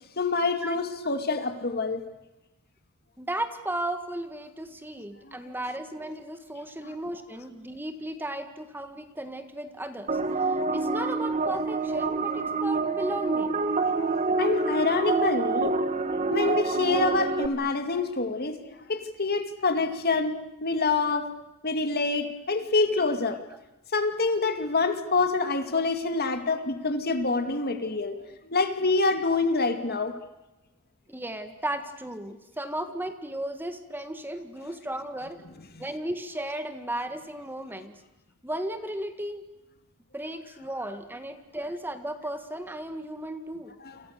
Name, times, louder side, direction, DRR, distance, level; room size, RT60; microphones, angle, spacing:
voice 1, 0.2-2.0 5.3-5.5 6.8-6.9 14.4-15.7 16.3-20.3 20.6-21.3 21.6-23.4 23.9-28.2 28.4-30.1 43.8-44.0, left 3 dB, 45° left, 7 dB, 2.5 m, -26 dB
voice 2, 3.2-10.2 10.7-13.6 21.1-21.3 28.3-28.4 31.1-35.4 35.8-37.9 38.4-39.4 40.1-43.7, right 1 dB, 10° right, 8 dB, 1.7 m, -35 dB
sound 1, 10.1-17.5, right 3 dB, 35° right, 1.6 m, -27 dB
29.0 x 27.5 x 6.8 m, 1.0 s
head